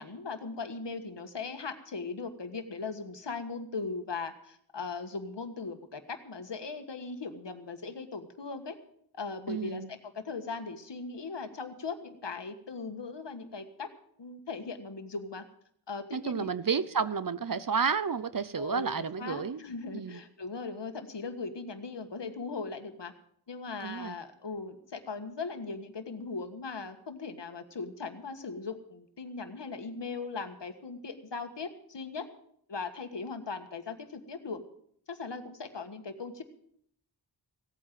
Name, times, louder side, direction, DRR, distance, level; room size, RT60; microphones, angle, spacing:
voice 1, 0.0-8.8 9.1-13.9 14.2-15.4 15.9-16.5 18.6-18.8 19.2-23.1 23.5-32.3 32.7-34.6 35.1-36.4, left 4 dB, 75° left, 8 dB, 1.7 m, -39 dB
voice 2, 9.5-9.9 16.1-19.6 19.9-20.2 23.8-24.1, right 6 dB, 50° right, 15 dB, 0.8 m, -31 dB
16.5 x 8.9 x 7.6 m, 0.66 s
wide cardioid pair, 65°, 43 cm